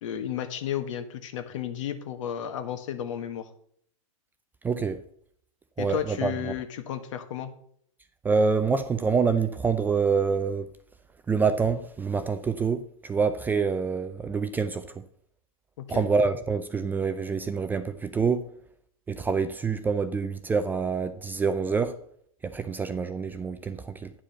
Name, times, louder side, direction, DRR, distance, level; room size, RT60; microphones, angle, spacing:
voice 1, 0.0-3.5 5.8-7.5 15.8-16.0, left 9 dB, 60° left, 1.6 m, -33 dB
voice 2, 4.6-5.0 5.8-6.5 8.2-10.7 11.3-15.0 15.9-18.4 19.1-21.9 22.4-24.1, right 5 dB, 10° right, 0.5 m, -26 dB
10.0 x 5.0 x 7.4 m
hypercardioid pair, 130°, 18 cm